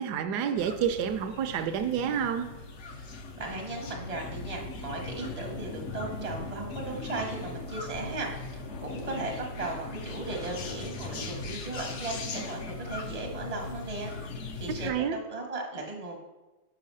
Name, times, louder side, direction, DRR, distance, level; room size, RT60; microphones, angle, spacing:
voice 1, 0.0-2.5 14.8-15.2, right 8 dB, 70° right, 9 dB, 1.0 m, -29 dB
sound 1, 0.6-14.9, left 3 dB, 65° left, 0.7 m, -39 dB
voice 2, 3.3-14.1 14.6-16.2, right 2 dB, 35° right, 1 dB, 0.6 m, -37 dB
5.6 x 5.5 x 5.3 m, 1.1 s
omnidirectional pair, 2.0 m